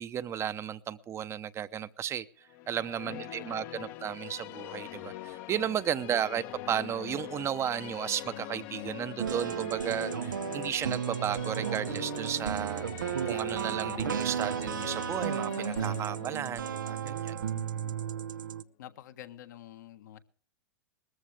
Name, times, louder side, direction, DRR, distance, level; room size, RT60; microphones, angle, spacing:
voice 1, 0.0-2.3 2.7-17.4, right 9 dB, 25° right, 0.8 m, -34 dB
sound 1, 2.5-18.5, left 15 dB, 50° left, 1.0 m, -43 dB
voice 2, 3.0-4.0 17.5-18.0 18.8-20.2, left 11 dB, 65° left, 1.6 m, -49 dB
sound 2, 9.2-18.6, right 8 dB, 80° right, 0.7 m, -34 dB
20.0 x 14.5 x 3.3 m
hypercardioid pair, 110°, 10 cm